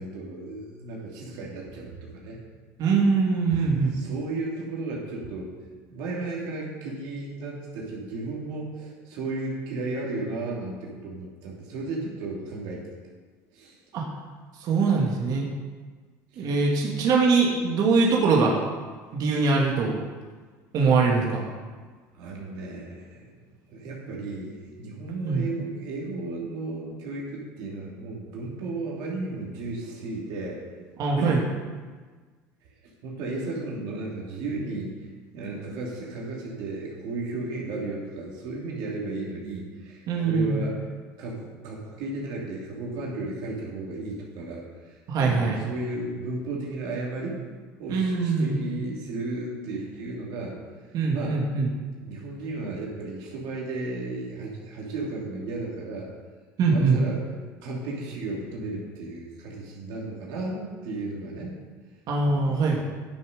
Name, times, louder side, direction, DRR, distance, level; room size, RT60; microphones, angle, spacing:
voice 1, 0.0-2.4 3.9-5.5 5.9-12.8 13.5-13.8 16.3-16.5 22.1-30.6 31.2-31.5 33.0-35.1 35.3-40.8 41.2-47.4 47.8-50.6 51.1-51.4 52.0-56.1 56.7-57.2 57.6-61.5 62.3-62.8, right 2 dB, 70° right, -3 dB, 2.8 m, -34 dB
voice 2, 2.8-3.9 13.9-14.1 14.6-15.5 16.4-18.6 19.1-19.9 20.7-21.4 25.2-25.5 31.0-31.4 40.1-40.7 45.1-45.6 47.9-48.6 50.9-51.7 56.6-57.0 62.1-62.8, right 4 dB, 55° right, -2 dB, 1.9 m, -22 dB
10.5 x 6.6 x 5.2 m, 1.4 s
supercardioid pair, 100°, 8 cm